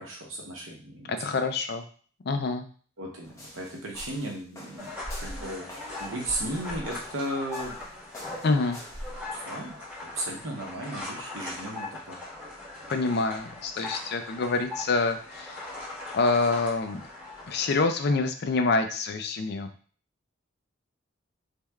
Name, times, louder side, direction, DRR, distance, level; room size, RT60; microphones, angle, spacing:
voice 1, 0.0-1.1 3.0-4.9 5.2-5.7 6.0-7.8 9.3-9.7 10.0-12.2, right 1 dB, 75° right, 0 dB, 0.9 m, -35 dB
voice 2, 1.1-1.9 2.2-2.7 8.4-8.8 12.9-15.7 16.1-17.0 17.5-19.7, left 3 dB, 55° left, 7 dB, 0.4 m, -26 dB
steps staircase, 3.2-9.7, equal, 15° left, 0.8 m, -43 dB
sound 1, 4.8-17.8, left 2 dB, 5° right, 1.4 m, -40 dB
3.4 x 3.1 x 2.3 m, 0.43 s
head